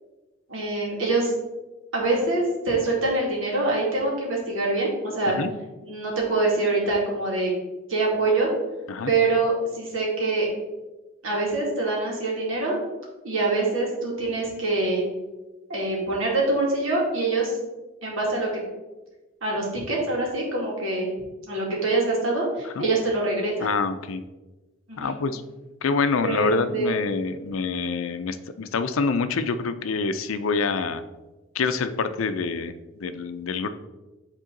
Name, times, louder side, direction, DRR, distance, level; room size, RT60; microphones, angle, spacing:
voice 1, 0.5-1.3 1.9-5.4 5.8-7.5 7.9-8.5 9.1-10.5 11.2-12.8 13.2-15.0 15.7-17.6 18.0-18.5 19.4-21.1 21.5-23.8 24.9-25.2 26.2-27.0, right 2 dB, 75° right, -3 dB, 2.3 m, -25 dB
voice 2, 23.6-24.2 25.0-25.4 25.8-31.0 31.5-33.7, left 4 dB, 80° left, 11 dB, 0.5 m, -26 dB
9.2 x 3.7 x 3.8 m, 1.1 s
head